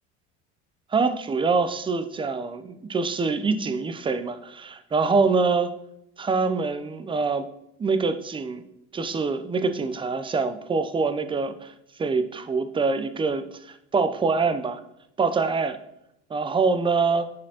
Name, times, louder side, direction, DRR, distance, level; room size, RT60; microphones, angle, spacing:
voice 1, 0.9-5.7 6.2-7.5 7.8-8.6 8.9-11.7 12.0-14.8 15.2-15.8 16.3-17.3, right 4 dB, 15° right, 10 dB, 0.5 m, -25 dB
8.9 x 4.0 x 2.9 m, 0.81 s
supercardioid pair, 90°, 34 cm